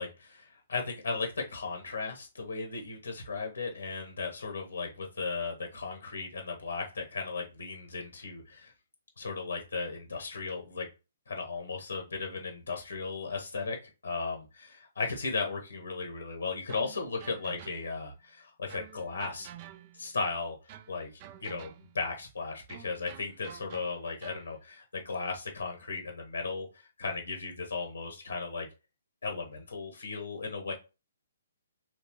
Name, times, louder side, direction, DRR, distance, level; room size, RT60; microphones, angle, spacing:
voice 1, 0.0-8.7 9.2-10.9 11.3-13.8 14.0-19.5 19.9-28.7 29.2-30.7, left 4 dB, 70° left, 3 dB, 1.0 m, -36 dB
sound 1, 16.7-18.1 18.7-20.2 20.7-22.0 22.7-24.5, right 10 dB, 35° right, 0.4 m, -50 dB
4.6 x 3.2 x 3.0 m, 0.29 s
figure-of-eight pair, 130°, 0 cm